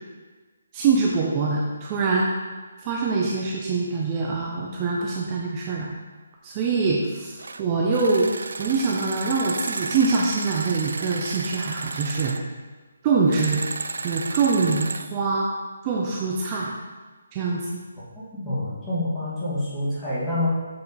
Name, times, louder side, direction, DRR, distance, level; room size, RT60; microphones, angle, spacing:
voice 1, 0.7-2.3 2.8-5.9 6.4-12.4 13.0-13.6 14.0-15.5 15.8-16.7 17.3-17.8, right 4 dB, 25° right, -3 dB, 0.5 m, -24 dB
sound 1, 7.4-7.6 7.9-12.4 13.3-15.1, right 3 dB, 75° right, 0.3 m, -33 dB
voice 2, 18.2-20.5, left 1 dB, 10° left, -11 dB, 1.8 m, -27 dB
6.8 x 3.4 x 4.0 m, 1.3 s
hypercardioid pair, 160°, 0 cm